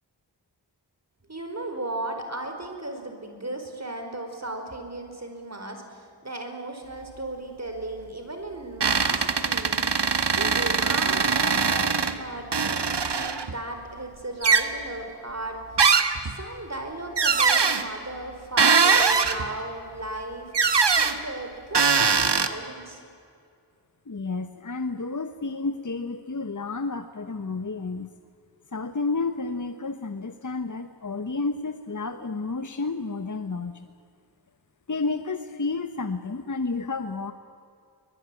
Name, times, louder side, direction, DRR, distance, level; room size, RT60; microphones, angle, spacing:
voice 1, 1.3-15.6 16.4-20.5 21.0-23.0, right 2 dB, 35° right, 5 dB, 5.0 m, -36 dB
sound 1, 8.8-12.1 12.5-13.5 14.4-14.7 15.8-16.3 17.2-17.8 18.6-19.5 20.5-21.2 21.7-22.5, right 5 dB, 70° right, 1.5 m, -21 dB
voice 2, 24.1-28.1 28.7-33.9 34.9-37.3, left 3 dB, 45° left, 9 dB, 1.2 m, -31 dB
23.5 x 21.0 x 9.9 m, 2.4 s
wide cardioid pair, 45°, 43 cm